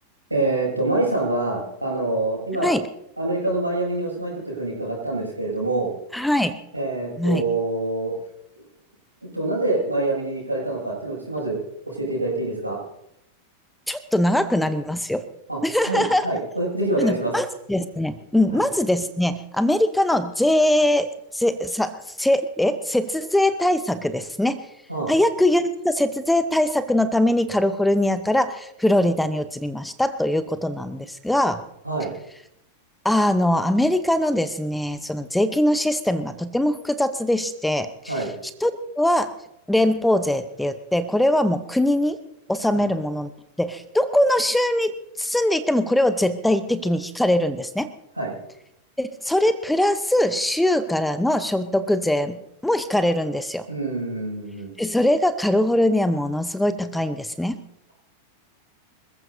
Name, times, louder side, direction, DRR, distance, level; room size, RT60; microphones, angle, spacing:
voice 1, 0.3-2.7 3.2-5.9 6.7-8.1 9.3-11.6 11.9-12.8 15.5-15.6 15.9-17.3 18.5-18.6 24.9-25.1 31.8-32.1 38.1-38.3 42.7-42.8 48.2-48.3 53.7-54.7, right 2 dB, 85° right, -2 dB, 6.5 m, -25 dB
voice 2, 6.1-6.6 7.2-7.4 13.9-15.2 15.6-16.3 17.0-24.6 25.1-31.6 33.0-38.2 38.6-39.3 39.7-42.2 42.5-43.3 43.6-47.9 49.0-52.4 52.6-53.6 54.8-57.6, left 1 dB, 5° left, 13 dB, 0.8 m, -22 dB
26.0 x 15.0 x 2.7 m, 0.80 s
figure-of-eight pair, 90°, 0 cm